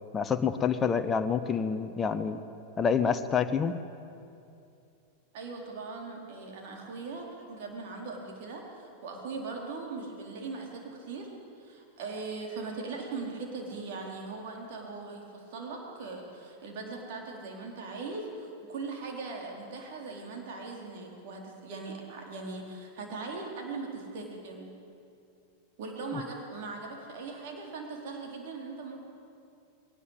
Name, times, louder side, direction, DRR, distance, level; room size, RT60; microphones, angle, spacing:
voice 1, 0.1-2.4 2.8-3.7 26.1-26.2, left 6 dB, 20° left, 9 dB, 0.9 m, -27 dB
voice 2, 5.3-11.3 11.6-24.7 25.8-29.0, right 3 dB, 50° right, 0 dB, 4.2 m, -40 dB
21.0 x 18.5 x 8.3 m, 2.6 s
figure-of-eight pair, 90°, 0 cm